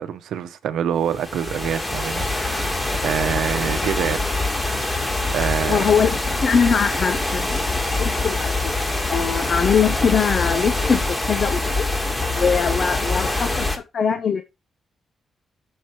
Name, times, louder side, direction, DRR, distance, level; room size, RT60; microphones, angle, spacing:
voice 1, 0.0-4.3 4.6-4.9 5.2-5.9, right 9 dB, 90° right, 0.9 m, -26 dB
sound 1, 1.1-13.8, left 2 dB, 20° left, 1.7 m, -24 dB
voice 2, 5.7-8.5 9.1-11.9 12.4-14.4, left 6 dB, 55° left, 0.8 m, -22 dB
6.7 x 4.5 x 4.5 m
cardioid pair, 95°, 0 cm